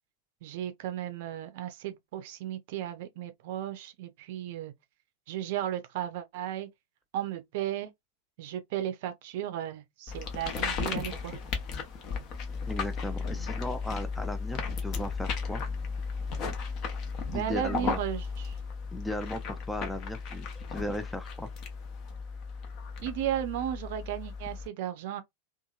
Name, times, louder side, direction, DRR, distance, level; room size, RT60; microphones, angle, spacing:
voice 1, 0.4-4.7 5.3-6.7 7.1-7.9 8.4-11.4 17.3-18.5 23.0-25.2, right 11 dB, 50° right, 0.5 m, -35 dB
sound 1, 10.1-24.7, left 5 dB, 40° left, 0.7 m, -35 dB
voice 2, 12.7-15.6 17.3-18.0 18.9-21.5, left 1 dB, 5° left, 0.4 m, -36 dB
2.7 x 2.5 x 2.3 m
figure-of-eight pair, 90°, 0 cm